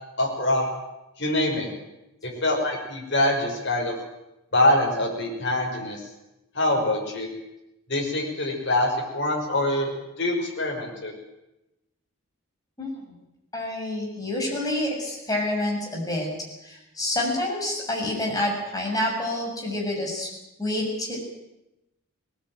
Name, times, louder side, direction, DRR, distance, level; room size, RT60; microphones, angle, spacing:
voice 1, 0.2-0.7 1.2-1.7 2.2-3.9 4.5-6.0 6.5-7.3 7.9-11.1, left 1 dB, 55° left, 0 dB, 5.8 m, -24 dB
voice 2, 13.5-16.3 16.6-20.3 20.6-21.2, left 1 dB, 15° left, -1 dB, 7.0 m, -28 dB
21.0 x 18.5 x 9.2 m, 0.92 s
head